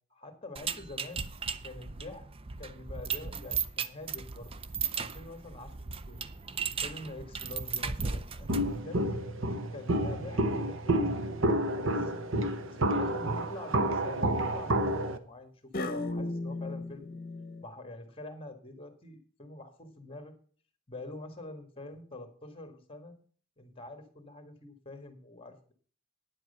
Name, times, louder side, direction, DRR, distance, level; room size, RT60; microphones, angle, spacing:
voice 1, 0.1-1.3 1.6-2.3 2.6-4.5 4.9-5.7 6.1-6.2 6.8-9.2 9.7-12.2 12.6-17.2 17.6-20.3 20.9-23.2 23.6-25.7, left 2 dB, 25° left, 7 dB, 1.7 m, -46 dB
sound 1, 0.6-8.8, right 6 dB, 25° right, 0.5 m, -36 dB
Walk footsteps, 8.5-15.2, right 1 dB, 65° right, 1.1 m, -29 dB
sound 2, 11.8-12.3 12.9-13.5 15.7-17.6, left 2 dB, 45° left, 1.2 m, -37 dB
9.9 x 7.6 x 6.6 m, 0.43 s
head